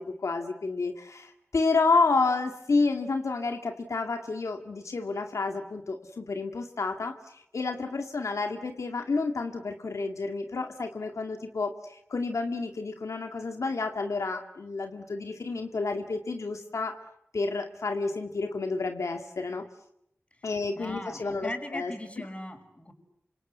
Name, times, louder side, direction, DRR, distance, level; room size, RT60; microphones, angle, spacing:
voice 1, 0.0-17.0 17.3-19.6 20.4-21.9, left 3 dB, 90° left, 5 dB, 2.2 m, -30 dB
voice 2, 20.8-22.9, left 1 dB, 25° left, 5 dB, 6.0 m, -39 dB
27.5 x 26.5 x 8.1 m, 0.76 s
wide cardioid pair, 65°, 5 cm